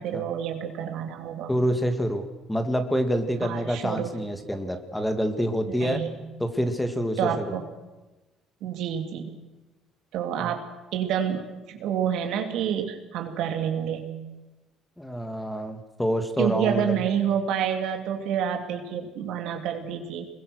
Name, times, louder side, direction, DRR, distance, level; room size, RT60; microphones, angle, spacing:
voice 1, 0.0-1.5 3.4-4.2 5.7-6.2 7.2-7.6 8.6-9.3 10.1-10.7 10.9-14.1 16.4-20.3, right 9 dB, 70° right, 4 dB, 2.9 m, -28 dB
voice 2, 1.5-6.0 6.4-7.6 10.4-10.5 15.0-17.0, equal, 5° left, 7 dB, 2.1 m, -27 dB
26.5 x 21.5 x 6.3 m, 1.1 s
cardioid pair, 115°, 0 cm